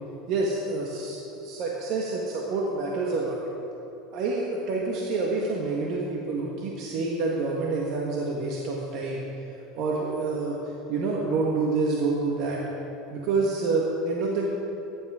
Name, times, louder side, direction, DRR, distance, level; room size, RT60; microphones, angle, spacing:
voice 1, 0.3-3.4 4.1-9.3 9.8-10.6 10.9-12.6 13.1-14.5, right 3 dB, 60° right, -2 dB, 1.4 m, -27 dB
14.0 x 10.5 x 3.7 m, 3.0 s
supercardioid pair, 110°, 0 cm